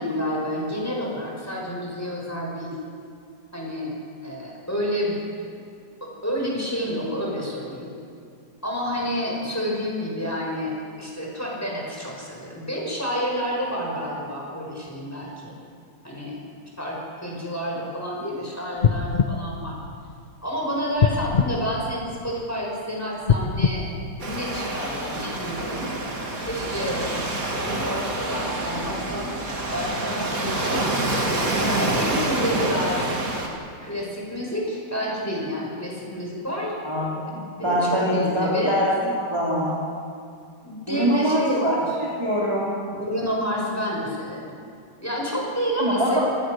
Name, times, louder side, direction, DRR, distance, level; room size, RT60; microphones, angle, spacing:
voice 1, 0.0-2.8 3.5-4.0 4.2-5.2 6.0-7.9 8.6-15.5 16.0-16.4 16.8-19.8 20.4-23.9 24.2-25.9 26.4-27.1 27.5-29.3 29.7-30.9 31.6-33.0 33.8-36.7 37.2-38.8 40.6-41.9 42.9-44.5 45.0-46.2, equal, 10° left, -3 dB, 5.9 m, -29 dB
sound 1, 18.8-20.4 21.0-22.5 23.2-24.9 25.4-25.5, left 6 dB, 70° left, 0.4 m, -24 dB
Waves surf, 24.2-33.5, right 2 dB, 50° right, 3.0 m, -27 dB
voice 2, 36.8-37.2 37.6-38.9 39.1-39.8 40.9-42.8 45.8-46.2, equal, 15° right, -7 dB, 3.8 m, -23 dB
28.0 x 19.0 x 6.5 m, 2.3 s
omnidirectional pair, 2.0 m